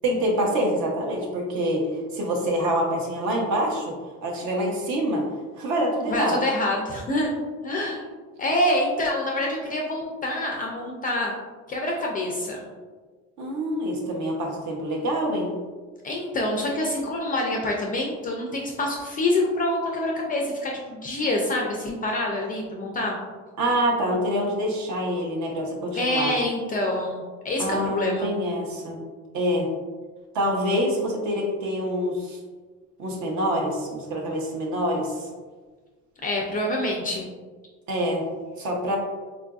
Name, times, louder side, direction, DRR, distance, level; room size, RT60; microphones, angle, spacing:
voice 1, 0.0-3.9 4.2-5.2 5.6-6.4 13.4-15.5 23.6-26.3 27.6-29.0 29.3-29.7 30.3-32.4 33.0-35.1 37.9-38.2 38.6-39.0, equal, 60° right, -1 dB, 0.8 m, -26 dB
voice 2, 6.1-7.3 7.6-8.1 8.4-11.4 11.7-12.6 16.0-23.2 25.9-28.3 36.2-37.3, left 1 dB, 25° left, -1 dB, 0.4 m, -26 dB
3.8 x 2.5 x 2.3 m, 1.4 s
cardioid pair, 125°, 32 cm